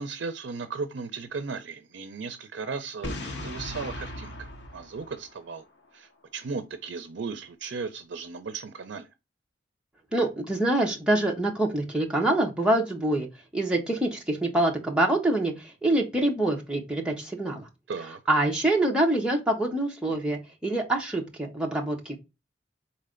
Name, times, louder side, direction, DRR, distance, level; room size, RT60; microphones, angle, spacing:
voice 1, 0.0-4.5 4.7-5.6 5.9-9.1 17.9-18.2, right 4 dB, 80° right, 0.5 m, -36 dB
Boom, 3.0-5.9, left 2 dB, 70° left, 0.8 m, -38 dB
Dist Chr B Mid-G up pm, 3.2-4.9, right 5 dB, 25° left, 1.6 m, -46 dB
voice 2, 10.1-13.3 13.5-17.7 18.3-22.2, right 1 dB, 5° right, 0.8 m, -25 dB
4.1 x 3.2 x 3.7 m
head